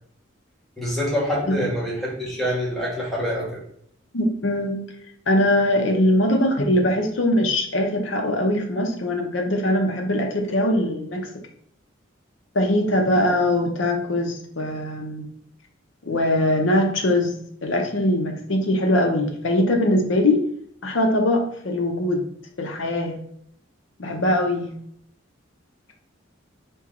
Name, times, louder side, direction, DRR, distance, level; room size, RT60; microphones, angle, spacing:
voice 1, 0.8-3.6, equal, ahead, -6 dB, 1.3 m, -26 dB
voice 2, 4.1-4.9 5.3-11.3 12.5-15.3 16.0-17.4 17.6-20.4 20.8-22.3 22.6-23.2 24.0-24.7, left 1 dB, 80° left, 3 dB, 0.8 m, -21 dB
4.5 x 2.3 x 3.7 m, 0.67 s
head